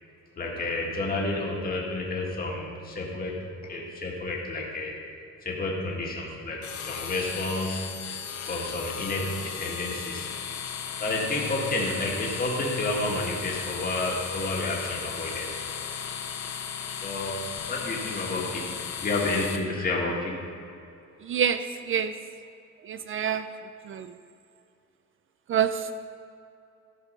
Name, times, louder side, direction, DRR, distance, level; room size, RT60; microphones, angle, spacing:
voice 1, 0.4-3.4 3.7-4.9 5.4-8.0 8.5-10.3 11.0-15.6 17.0-20.3, left 2 dB, 30° left, -3 dB, 1.6 m, -30 dB
sound 1, 6.6-19.6, left 7 dB, 75° left, 0.9 m, -36 dB
voice 2, 21.2-21.6 21.9-22.1 22.8-23.4 23.9-24.1 25.5-25.9, right 8 dB, 45° right, 10 dB, 0.4 m, -26 dB
14.0 x 5.1 x 5.5 m, 2.6 s
cardioid pair, 130°, 29 cm